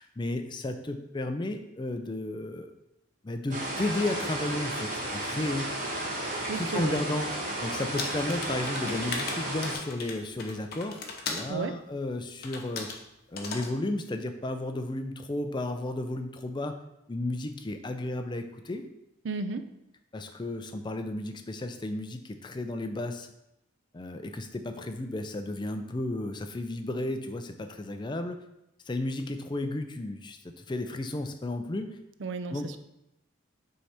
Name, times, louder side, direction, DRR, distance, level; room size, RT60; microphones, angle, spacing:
voice 1, 0.0-2.7 3.2-5.7 6.6-7.3 7.6-12.9 13.3-16.8 17.1-18.8 20.1-23.3 23.9-28.4 28.9-32.0 32.5-32.7, left 2 dB, 20° left, 7 dB, 0.4 m, -33 dB
sound 1, 3.5-9.7, right 1 dB, 40° right, 1.2 m, -33 dB
voice 2, 6.5-7.0 11.5-11.8 19.2-19.7 32.2-32.8, right 4 dB, 60° right, 10 dB, 0.4 m, -33 dB
sound 2, 8.0-11.5 12.4-13.0 13.4-13.7, left 4 dB, 50° left, 0.8 m, -37 dB
5.5 x 3.4 x 5.6 m, 0.87 s
head